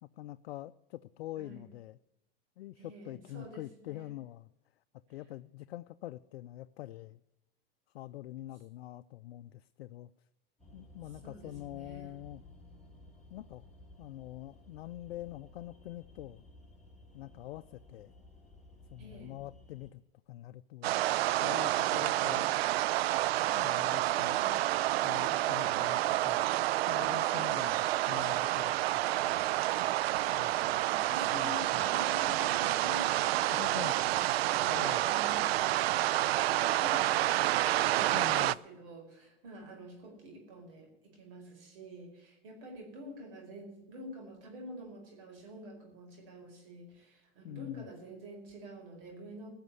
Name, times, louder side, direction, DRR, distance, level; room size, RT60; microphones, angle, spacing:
voice 1, 0.0-2.0 2.6-4.5 5.1-7.2 7.9-10.1 10.7-12.4 13.3-13.6 14.0-16.5 17.1-18.1 18.9-20.0 20.3-21.0 21.4-22.5 23.5-24.6 25.0-26.5 26.9-29.5 30.4-30.8 31.3-31.8 33.5-34.2 34.7-35.1 38.1-38.6 47.4-47.9, left 15 dB, 80° left, 10 dB, 0.5 m, -45 dB
voice 2, 2.8-4.1 11.2-12.3 19.0-19.4 30.8-33.5 34.0-35.6 36.1-49.5, equal, 65° right, 2 dB, 5.0 m, -48 dB
sound 1, 10.6-19.9, left 1 dB, ahead, 5.2 m, -56 dB
sound 2, 20.8-38.5, right 15 dB, 80° right, 0.5 m, -29 dB
15.0 x 6.7 x 9.5 m, 0.90 s
hypercardioid pair, 120°, 30 cm